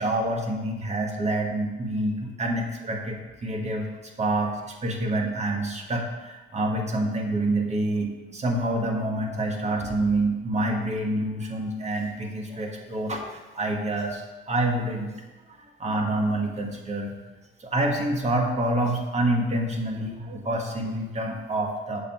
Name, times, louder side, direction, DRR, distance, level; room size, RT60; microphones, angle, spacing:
voice 1, 0.0-3.9 4.2-15.2 15.5-17.1 17.6-22.0, right 1 dB, 35° right, 2 dB, 1.4 m, -27 dB
6.9 x 4.6 x 5.5 m, 1.2 s
cardioid pair, 90°, 20 cm